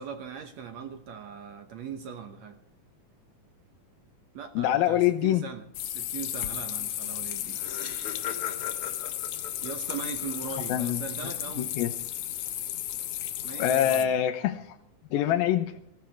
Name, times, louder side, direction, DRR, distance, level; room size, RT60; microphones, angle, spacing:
voice 1, 0.0-2.6 4.3-7.6 9.6-11.7 13.4-14.1, right 6 dB, 65° right, 6 dB, 1.9 m, -40 dB
voice 2, 4.6-5.4 10.7-11.0 11.6-11.9 13.6-14.8 15.1-15.7, left 11 dB, 90° left, 4 dB, 2.6 m, -25 dB
sound 1, 5.7-14.1, left 12 dB, 70° left, 2.0 m, -34 dB
Laughter, 7.0-7.1 7.3-10.9, left 8 dB, 45° left, 2.4 m, -40 dB
16.5 x 16.0 x 4.6 m, 0.76 s
omnidirectional pair, 4.2 m